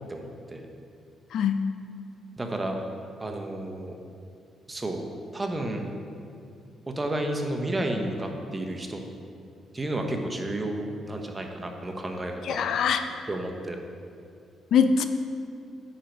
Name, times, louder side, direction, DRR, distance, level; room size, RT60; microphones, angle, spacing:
voice 1, 0.1-0.6 2.4-2.8 3.2-4.0 4.7-5.0 5.3-5.9 6.9-9.0 9.7-12.7 13.3-13.8, right 1 dB, 20° right, 3 dB, 1.0 m, -31 dB
voice 2, 1.3-1.6 12.4-13.0 14.7-15.0, left 6 dB, 70° left, 9 dB, 0.4 m, -22 dB
9.4 x 4.5 x 5.3 m, 2.4 s
cardioid pair, 90°, 0 cm